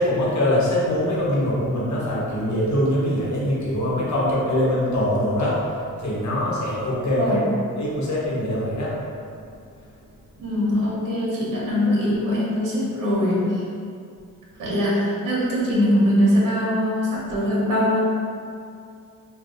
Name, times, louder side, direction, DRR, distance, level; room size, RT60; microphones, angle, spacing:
voice 1, 0.0-7.4 7.8-9.0, left 1 dB, 55° left, -6 dB, 1.0 m, -23 dB
voice 2, 7.2-7.5 10.4-13.6 14.6-18.0, equal, 70° right, -6 dB, 1.1 m, -22 dB
3.9 x 2.4 x 2.5 m, 2.4 s
cardioid pair, 70°, 34 cm